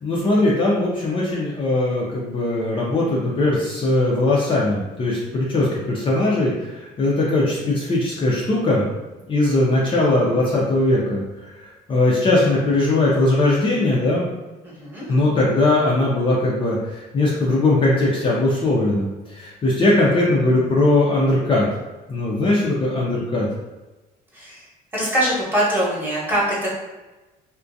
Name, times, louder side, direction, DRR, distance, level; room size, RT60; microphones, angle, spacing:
voice 1, 0.0-8.8 9.3-14.3 15.1-21.7 22.1-23.5, left 2 dB, 30° left, -5 dB, 0.5 m, -20 dB
voice 2, 14.6-15.1 24.3-24.6 24.9-26.7, right 1 dB, 10° right, -7 dB, 1.0 m, -23 dB
2.3 x 2.1 x 2.6 m, 1.1 s
cardioid pair, 110°, 17 cm